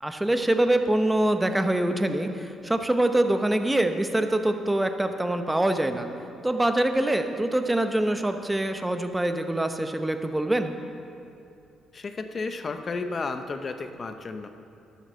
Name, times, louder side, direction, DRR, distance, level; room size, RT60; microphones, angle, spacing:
voice 1, 0.0-6.1 6.4-10.8, right 1 dB, 10° right, 7 dB, 0.8 m, -24 dB
voice 2, 11.9-14.5, left 3 dB, 40° left, 8 dB, 0.7 m, -32 dB
12.0 x 8.3 x 6.4 m, 2.6 s
cardioid pair, 90°, 0 cm